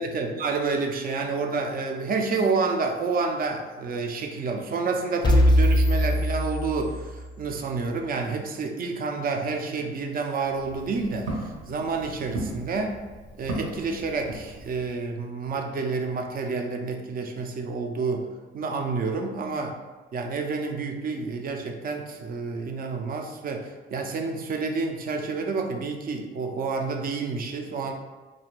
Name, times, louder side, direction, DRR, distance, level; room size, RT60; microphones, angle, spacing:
voice 1, 0.0-13.0 13.4-18.3 18.5-19.8 20.1-27.9, right 4 dB, 50° right, 3 dB, 0.4 m, -29 dB
sound 1, 5.2-7.3, equal, 20° left, 0.4 m, -21 dB
Walk footsteps, 10.4-15.0, right 1 dB, 80° right, 0.9 m, -37 dB
2.5 x 2.2 x 3.1 m, 1.3 s
cardioid pair, 90°, 20 cm